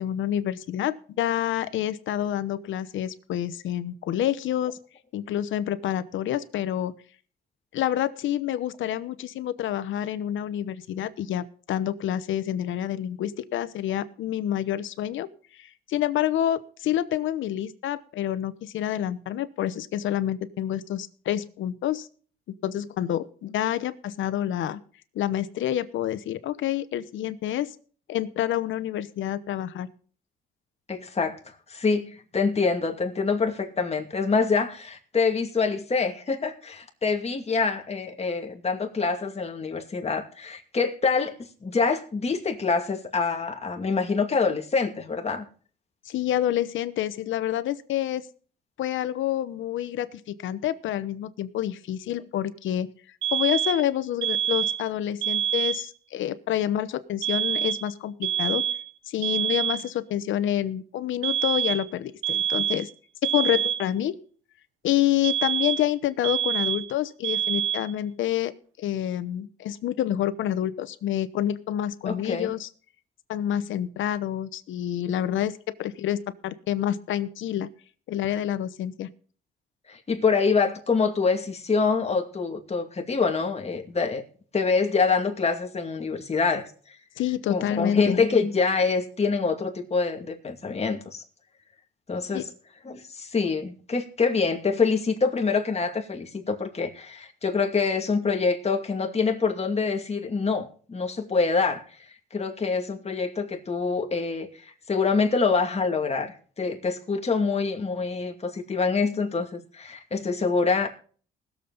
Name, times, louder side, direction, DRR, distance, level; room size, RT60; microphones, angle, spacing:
voice 1, 0.0-4.8 5.1-6.9 7.7-15.3 15.6-22.1 22.6-24.8 25.1-27.7 28.1-29.9 46.1-48.3 48.8-52.9 53.3-58.6 59.1-62.9 63.2-64.2 64.8-68.5 68.8-72.7 73.3-77.7 78.1-79.1 87.2-88.2 92.3-92.4, left 11 dB, 75° left, 1.0 m, -28 dB
voice 2, 30.9-31.3 31.7-45.4 72.0-72.5 79.9-84.2 84.5-86.7 87.5-91.2 92.1-92.5 92.8-101.8 102.3-110.9, left 4 dB, 30° left, 2.3 m, -25 dB
sound 1, 53.2-53.9 54.2-54.9 55.2-55.9 57.2-57.9 58.2-58.9 59.2-59.9 61.2-61.9 62.2-62.9 63.2-63.9 65.2-65.9 66.2-66.9 67.2-67.9, right 9 dB, 75° right, 0.9 m, -26 dB
20.0 x 7.4 x 4.0 m
cardioid pair, 90°, 20 cm